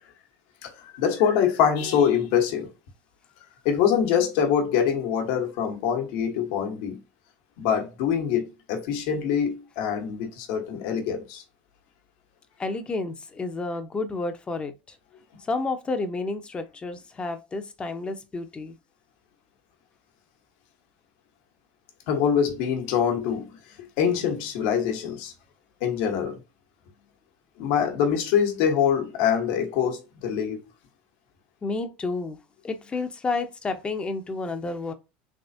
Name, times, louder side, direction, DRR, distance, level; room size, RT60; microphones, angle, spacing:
voice 1, 0.6-2.7 3.6-7.0 7.6-11.4 22.1-23.5 24.0-25.3 25.8-26.4 27.6-30.6, left 8 dB, 70° left, 1.2 m, -24 dB
voice 2, 12.6-14.7 15.5-18.7 31.6-32.4 32.6-34.9, left 3 dB, 20° left, 0.7 m, -30 dB
3.5 x 3.2 x 2.6 m
supercardioid pair, 110°, 5 cm